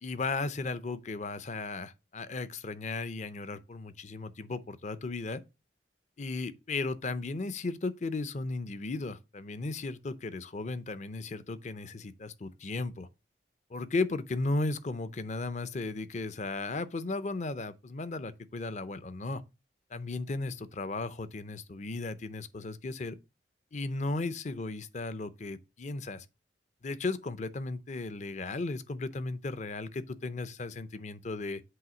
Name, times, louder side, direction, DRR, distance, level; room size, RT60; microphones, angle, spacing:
voice 1, 0.0-5.4 6.2-13.1 13.7-19.4 19.9-23.2 23.7-26.3 26.8-31.6, left 3 dB, 40° left, 0.6 m, -35 dB
7.9 x 3.1 x 6.0 m
head